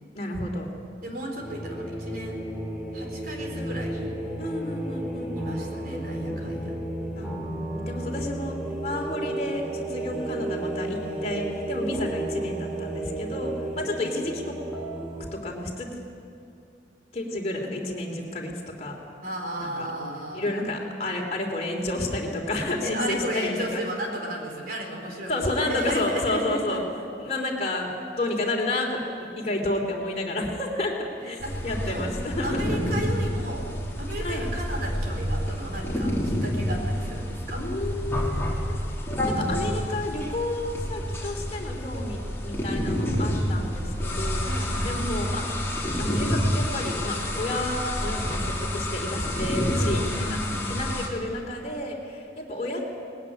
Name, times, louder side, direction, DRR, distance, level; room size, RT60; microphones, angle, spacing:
voice 1, 0.1-0.7 4.4-5.3 7.1-7.3 7.7-14.6 15.3-15.9 17.1-19.0 19.6-19.9 20.3-23.8 25.3-26.8 27.2-31.4 31.6-32.8 34.2-34.5 37.5-38.8 39.2-44.4 44.8-45.6 46.0-50.4 50.7-52.8, left 1 dB, 35° left, 0 dB, 3.2 m, -31 dB
voice 2, 1.0-2.4 2.9-4.1 5.4-6.8 19.2-20.6 22.8-26.8 31.2-32.0 32.4-33.7 34.0-37.6 44.4-44.9 49.6-50.9, right 1 dB, 50° right, 1 dB, 4.0 m, -34 dB
sound 1, 1.4-15.3, right 1 dB, 5° right, 2.9 m, -33 dB
sound 2, 31.4-51.1, equal, 15° left, 3.2 m, -28 dB
20.0 x 16.0 x 9.8 m, 2.4 s
head